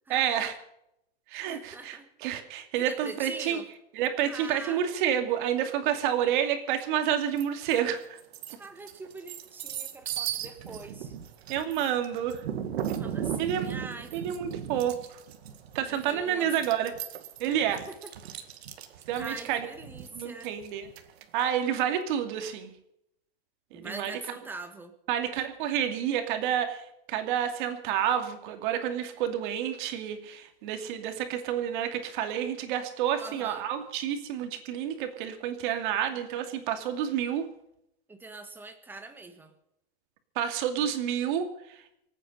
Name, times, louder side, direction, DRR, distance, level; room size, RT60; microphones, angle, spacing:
voice 1, 0.1-0.5 1.3-3.6 4.0-8.2 11.5-12.4 13.4-13.7 14.1-14.9 15.7-16.9 17.4-17.8 19.1-19.7 20.1-20.9 21.3-22.7 23.7-24.2 25.1-26.8 27.1-37.4 40.4-41.5, right 9 dB, 55° right, 6 dB, 2.5 m, -29 dB
voice 2, 1.5-2.1 2.8-3.7 4.2-4.8 8.6-11.2 12.9-14.2 15.9-16.7 17.7-18.1 19.2-20.6 23.7-24.9 33.2-33.7 38.1-39.5, right 3 dB, 5° right, 7 dB, 1.4 m, -43 dB
sound 1, 7.4-7.8 8.2-21.4, right 9 dB, 85° right, 2.0 m, -37 dB
26.5 x 9.1 x 5.6 m, 0.79 s
supercardioid pair, 165°, 31 cm